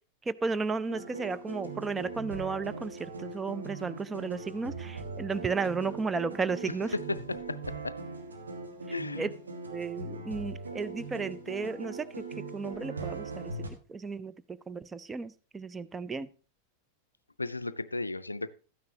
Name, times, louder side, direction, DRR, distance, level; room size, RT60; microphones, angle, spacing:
voice 1, 0.3-6.9 9.2-9.3 9.7-13.5 13.9-16.3, right 4 dB, 15° right, 0.4 m, -34 dB
sound 1, 0.9-13.7, right 3 dB, 75° right, 1.5 m, -40 dB
voice 2, 6.9-8.0 8.9-9.3 17.4-18.5, left 2 dB, 80° left, 0.4 m, -34 dB
12.5 x 9.5 x 2.9 m
figure-of-eight pair, 90°, 0 cm